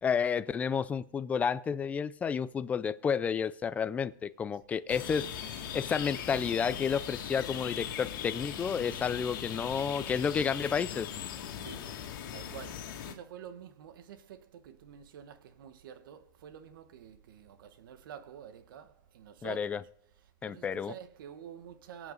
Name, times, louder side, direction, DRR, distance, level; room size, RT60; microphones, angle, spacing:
voice 1, 0.0-5.3 5.7-11.1 19.4-19.8 20.4-20.9, left 6 dB, 15° left, 0.4 m, -31 dB
sound 1, 4.9-13.1, left 9 dB, 70° left, 2.4 m, -39 dB
voice 2, 11.6-19.9 20.2-22.1, right 9 dB, 75° right, 1.4 m, -49 dB
23.5 x 8.0 x 4.0 m
supercardioid pair, 155°, 11 cm